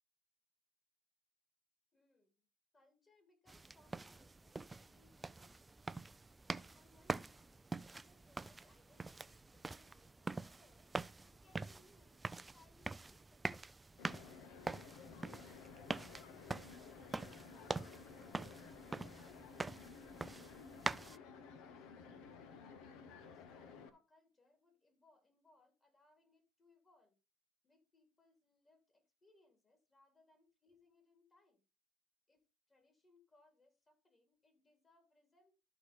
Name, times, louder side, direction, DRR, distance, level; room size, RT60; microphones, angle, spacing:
voice 1, 1.9-2.4 2.7-5.8 6.4-10.9 11.2-13.5 14.0-15.2 15.8-22.1 23.0-27.1 27.6-31.6 32.3-35.5, left 2 dB, 25° left, 6 dB, 3.2 m, -72 dB
sound 1, 3.5-21.2, right 3 dB, 15° right, 0.4 m, -45 dB
sound 2, 14.0-23.9, left 5 dB, 70° left, 1.2 m, -55 dB
12.5 x 4.9 x 4.3 m, 0.30 s
supercardioid pair, 85°, 0 cm